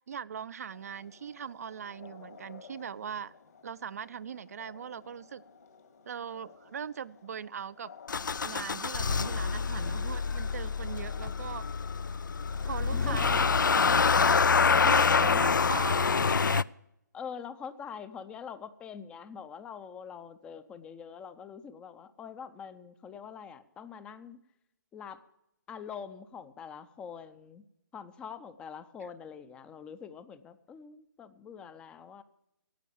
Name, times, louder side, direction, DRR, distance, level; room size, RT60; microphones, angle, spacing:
voice 1, 0.1-3.3 3.6-5.4 6.1-7.9 8.4-11.7 12.6-14.0 14.8-16.6, right 7 dB, 50° right, 16 dB, 0.5 m, -40 dB
sound 1, 0.7-13.8, left 5 dB, 55° left, 2.1 m, -55 dB
Motor vehicle (road) / Engine starting, 8.1-16.6, left 5 dB, 75° left, 0.4 m, -26 dB
voice 2, 12.9-13.5 17.1-24.4 24.9-25.2 25.7-27.6 27.9-32.2, left 6 dB, 10° left, 13 dB, 0.5 m, -44 dB
15.5 x 9.1 x 7.3 m, 0.84 s
figure-of-eight pair, 140°, 10 cm